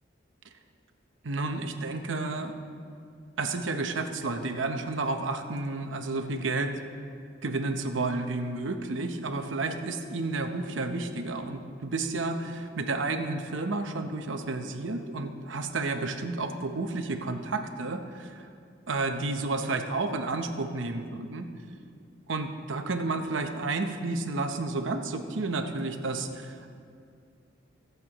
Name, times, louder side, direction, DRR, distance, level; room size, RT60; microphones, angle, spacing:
voice 1, 1.2-2.6 3.4-6.7 7.4-18.5 18.9-21.5 22.3-26.7, right 3 dB, 80° right, 6 dB, 0.9 m, -31 dB
24.5 x 8.2 x 3.0 m, 2.4 s
head